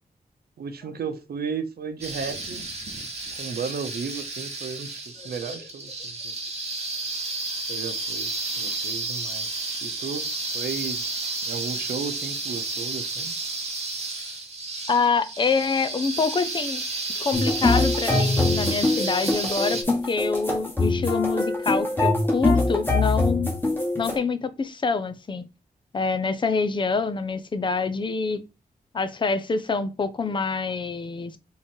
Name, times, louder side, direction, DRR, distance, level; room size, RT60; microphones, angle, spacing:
voice 1, 0.6-2.6 3.3-6.4 7.7-8.3 8.6-9.5 9.8-10.3 10.5-11.0 11.4-13.3, right 6 dB, 85° right, 0.7 m, -34 dB
sound 1, 2.0-19.8, right 3 dB, 45° right, 1.1 m, -32 dB
voice 2, 5.2-5.6 14.9-16.8 17.2-23.5 24.0-25.4 25.9-28.4 28.9-31.4, left 4 dB, 30° left, 0.5 m, -26 dB
sound 2, 17.3-24.2, left 2 dB, 15° left, 1.2 m, -23 dB
3.7 x 3.1 x 4.4 m
wide cardioid pair, 175°, 16 cm